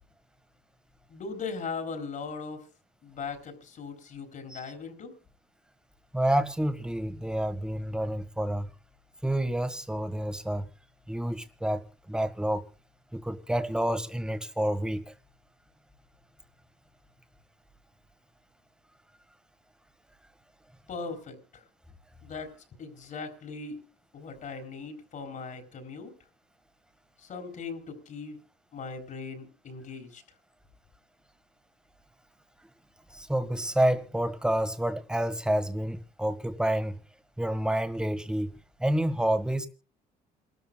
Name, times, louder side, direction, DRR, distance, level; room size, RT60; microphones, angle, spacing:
voice 1, 1.1-2.6 3.0-5.1 20.9-21.6 22.2-22.5 22.8-23.8 24.1-26.1 27.2-28.4 28.7-30.2, left 4 dB, 50° left, 4.3 m, -39 dB
voice 2, 6.1-8.7 9.2-10.7 11.1-12.6 13.1-15.1 33.1-37.0 37.4-38.5 38.8-39.7, right 1 dB, 5° right, 1.8 m, -29 dB
28.0 x 13.5 x 2.3 m
cardioid pair, 110°, 17 cm